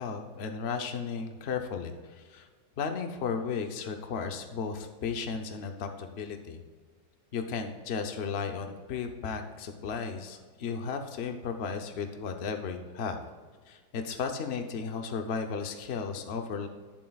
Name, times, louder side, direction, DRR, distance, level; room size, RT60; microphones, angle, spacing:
voice 1, 0.0-2.5 2.8-6.6 7.3-13.2 13.7-16.7, left 5 dB, 85° left, 5 dB, 0.5 m, -34 dB
19.5 x 7.3 x 2.3 m, 1.5 s
omnidirectional pair, 2.2 m